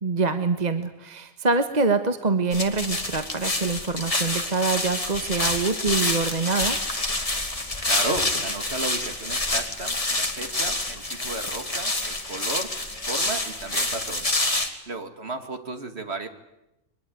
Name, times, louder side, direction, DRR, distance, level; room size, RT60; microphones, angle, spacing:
voice 1, 0.0-6.8, right 4 dB, 35° right, 9 dB, 1.4 m, -25 dB
sound 1, 2.5-14.7, left 2 dB, 25° left, 2.6 m, -27 dB
voice 2, 7.8-14.4 14.7-16.3, right 2 dB, 50° right, 7 dB, 2.5 m, -34 dB
23.5 x 22.0 x 9.4 m, 0.89 s
omnidirectional pair, 1.4 m